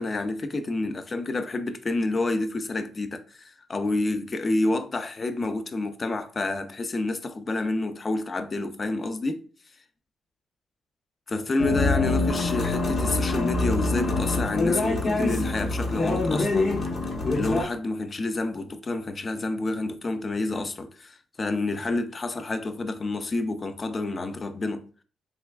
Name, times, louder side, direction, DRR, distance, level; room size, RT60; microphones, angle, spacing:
voice 1, 0.0-9.4 11.3-16.8 17.3-25.0, left 2 dB, 35° left, 0.4 m, -29 dB
sound 1, 11.6-17.6, left 2 dB, 50° left, 0.8 m, -25 dB
3.3 x 3.1 x 2.2 m
cardioid pair, 90°, 0 cm